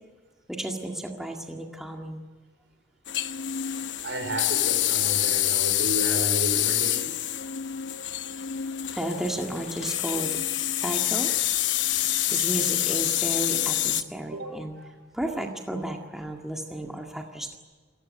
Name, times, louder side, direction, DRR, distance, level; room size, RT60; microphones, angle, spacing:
voice 1, 0.5-2.2 8.9-10.4 10.8-11.3 12.3-14.8 15.1-17.6, right 1 dB, 5° right, 1 dB, 1.9 m, -33 dB
sound 1, 3.1-14.0, left 13 dB, 80° left, 0.9 m, -26 dB
voice 2, 4.0-7.1 14.3-14.9, right 1 dB, 80° right, 7 dB, 4.9 m, -33 dB
28.5 x 15.5 x 9.3 m, 1.4 s
head